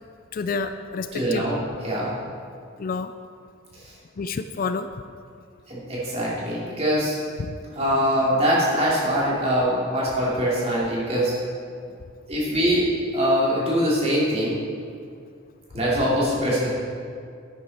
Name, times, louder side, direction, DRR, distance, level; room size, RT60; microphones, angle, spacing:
voice 1, 0.3-1.5 2.8-3.1 4.2-4.9 7.4-7.8, left 4 dB, 45° left, 10 dB, 0.4 m, -29 dB
voice 2, 1.1-1.6 1.8-2.1 3.7-3.9 5.7-7.2 7.7-11.4 12.3-14.6 15.7-16.7, equal, 30° right, -7 dB, 3.2 m, -23 dB
11.0 x 9.8 x 4.4 m, 2.3 s
head